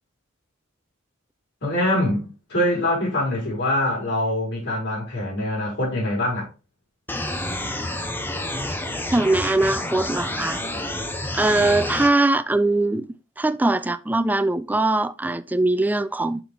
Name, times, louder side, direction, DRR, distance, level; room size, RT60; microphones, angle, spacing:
voice 1, 1.6-6.5, left 1 dB, 55° left, 4.2 m, -24 dB
sound 1, 7.1-12.1, left 1 dB, 10° left, 0.7 m, -29 dB
voice 2, 9.1-10.6 11.3-13.0 13.4-16.4, right 2 dB, 10° right, 0.3 m, -21 dB
5.9 x 5.8 x 3.5 m
head